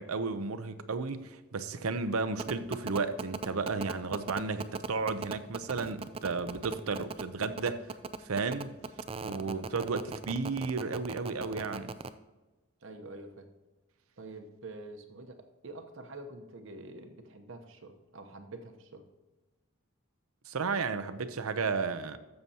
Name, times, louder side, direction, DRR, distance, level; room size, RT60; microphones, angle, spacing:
voice 1, 0.0-7.9 8.2-8.7 9.2-12.0 20.5-22.2, right 4 dB, 80° right, 0.7 m, -33 dB
sound 1, 2.4-12.1, right 4 dB, 25° right, 0.3 m, -37 dB
voice 2, 12.8-13.5 14.2-19.0, right 2 dB, 60° right, 0.9 m, -46 dB
12.5 x 7.7 x 2.9 m
head